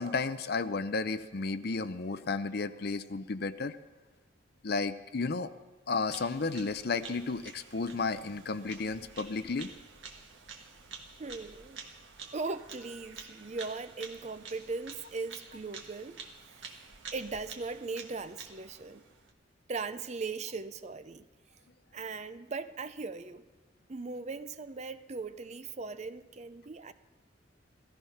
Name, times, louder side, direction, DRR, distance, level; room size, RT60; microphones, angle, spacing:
voice 1, 0.0-3.8 4.6-5.5 5.9-9.7, left 4 dB, 55° left, 12 dB, 0.6 m, -33 dB
Bird vocalization bird call bird song, 6.1-19.3, right 5 dB, 80° right, 1.5 m, -49 dB
voice 2, 11.2-11.8 12.3-16.2 16.6-16.8 17.1-19.0 19.7-21.2 21.9-23.5 23.9-26.9, right 4 dB, 35° right, 12 dB, 0.5 m, -39 dB
16.5 x 14.0 x 5.7 m, 1.2 s
head